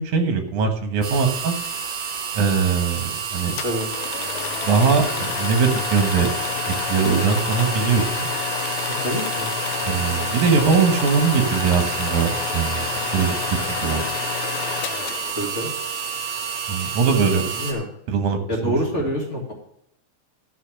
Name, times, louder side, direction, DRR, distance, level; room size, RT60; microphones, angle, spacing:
voice 1, 0.0-1.6 2.3-3.5 4.6-6.3 6.9-8.3 9.9-12.9 13.1-13.4 13.8-14.0 16.7-17.4 18.1-18.8, right 5 dB, 75° right, 6 dB, 2.8 m, -21 dB
sound 1, 1.0-17.7, right 6 dB, 60° right, 2.6 m, -29 dB
sound 2, 3.6-15.9, left 11 dB, 75° left, 1.9 m, -29 dB
voice 2, 9.0-9.6 13.0-13.3 15.3-15.7 17.3-17.9 18.5-19.5, equal, 25° left, -2 dB, 2.0 m, -27 dB
13.5 x 5.7 x 6.2 m, 0.74 s
omnidirectional pair, 3.5 m